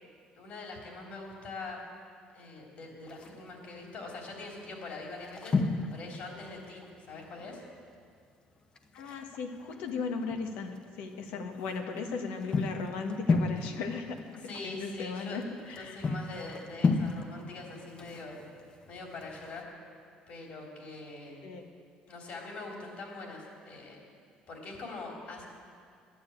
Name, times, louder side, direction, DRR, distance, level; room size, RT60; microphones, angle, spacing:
voice 1, 0.4-1.8 2.3-5.6 5.9-7.6 14.4-15.4 15.8-18.4 18.9-19.7 20.3-21.4 22.1-24.0 24.5-25.5, left 3 dB, 55° left, 0 dB, 3.5 m, -43 dB
sound 1, 3.1-3.7 4.3-4.5 4.8-7.5 7.8-7.9 8.2-8.3 8.8-10.8 11.3-19.6, left 3 dB, 30° left, 1.0 m, -34 dB
voice 2, 8.9-14.2 14.4-16.1 21.4-21.6, left 4 dB, 85° left, 4 dB, 1.5 m, -37 dB
12.0 x 9.5 x 8.6 m, 2.2 s
cardioid pair, 110°, 3 cm